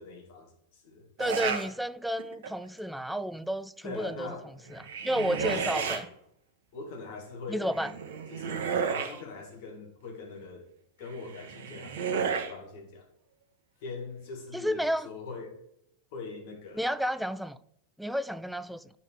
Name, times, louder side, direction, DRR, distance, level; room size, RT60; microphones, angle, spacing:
voice 1, 0.0-1.1 3.8-4.5 5.4-6.0 6.7-8.0 8.3-10.7 11.0-13.0 13.8-15.6 16.1-16.9, left 3 dB, 50° left, 1.8 m, -42 dB
voice 2, 1.2-6.1 7.5-7.9 14.5-15.1 16.7-17.6 18.0-18.9, equal, ahead, 0.3 m, -32 dB
sound 1, 1.2-1.7 2.2-2.6 4.7-6.0 7.7-9.2 11.2-12.5, right 6 dB, 55° right, 1.0 m, -32 dB
9.7 x 4.3 x 4.5 m
figure-of-eight pair, 90°, 0 cm